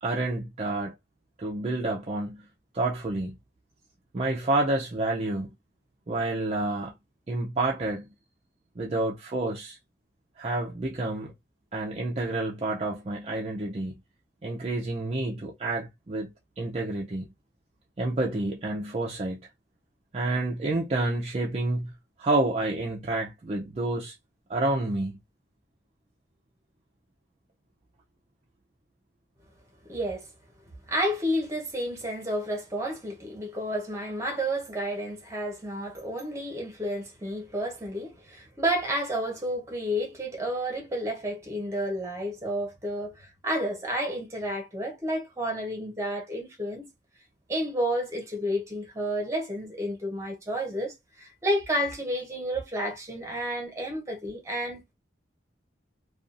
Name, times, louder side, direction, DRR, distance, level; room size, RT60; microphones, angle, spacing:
voice 1, 0.0-0.9 1.4-2.5 2.7-3.4 4.1-5.5 6.1-6.9 7.3-8.1 8.8-9.8 10.4-11.3 11.7-14.0 14.4-17.3 18.0-19.4 20.1-21.9 22.2-24.1 24.5-25.2, right 2 dB, 35° right, 0.4 m, -29 dB
voice 2, 29.9-30.3 30.9-46.9 47.5-54.9, equal, 15° right, 0.9 m, -31 dB
2.5 x 2.3 x 2.5 m
head